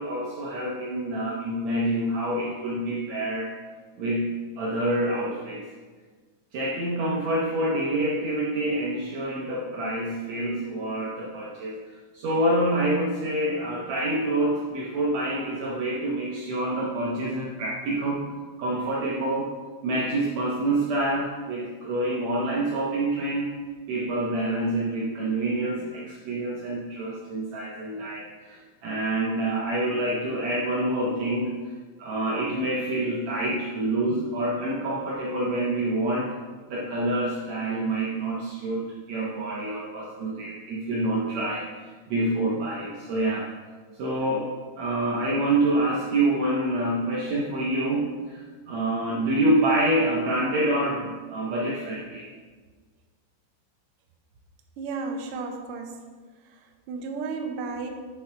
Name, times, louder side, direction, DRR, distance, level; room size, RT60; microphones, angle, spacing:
voice 1, 0.0-3.5 4.0-4.3 4.6-5.7 6.5-11.8 12.1-18.2 18.6-19.5 19.8-23.5 23.9-31.6 32.0-36.3 36.7-43.5 44.0-52.3, right 1 dB, 70° right, -4 dB, 2.0 m, -27 dB
voice 2, 54.8-57.9, right 4 dB, 90° right, 4 dB, 1.2 m, -34 dB
7.8 x 5.7 x 4.9 m, 1.5 s
omnidirectional pair, 3.6 m